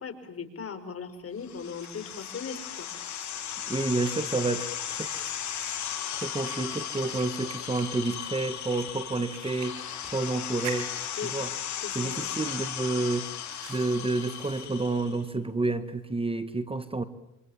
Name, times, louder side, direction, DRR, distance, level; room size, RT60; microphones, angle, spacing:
voice 1, 0.0-2.9 11.2-11.3 11.8-12.3, left 6 dB, 50° left, 8 dB, 5.1 m, -38 dB
Fire, 1.1-16.1, right 8 dB, 80° right, 4.9 m, -50 dB
sound 1, 1.4-15.2, left 9 dB, 65° left, 7.0 m, -36 dB
voice 2, 3.7-5.1 6.1-9.8 10.0-10.9 11.3-11.5 12.0-13.3 13.7-17.0, right 3 dB, 20° right, 12 dB, 1.8 m, -29 dB
27.5 x 27.0 x 7.4 m, 0.82 s
cardioid pair, 90°, 30 cm